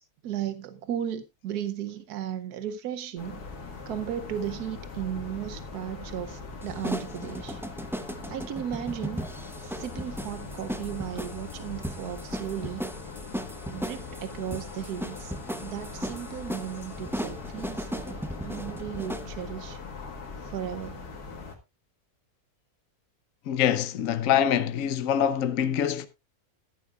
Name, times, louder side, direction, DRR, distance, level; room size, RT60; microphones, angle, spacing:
voice 1, 0.2-3.4 3.9-7.6 8.3-9.2 9.6-12.9 13.7-15.3 15.6-19.8 20.4-21.1, right 10 dB, 85° right, 1.3 m, -35 dB
sound 1, 3.2-21.6, left 4 dB, 90° left, 2.3 m, -41 dB
sound 2, 6.6-19.3, equal, 5° right, 0.4 m, -37 dB
voice 2, 23.5-26.1, left 9 dB, 65° left, 1.1 m, -25 dB
14.0 x 12.0 x 2.4 m
omnidirectional pair, 1.6 m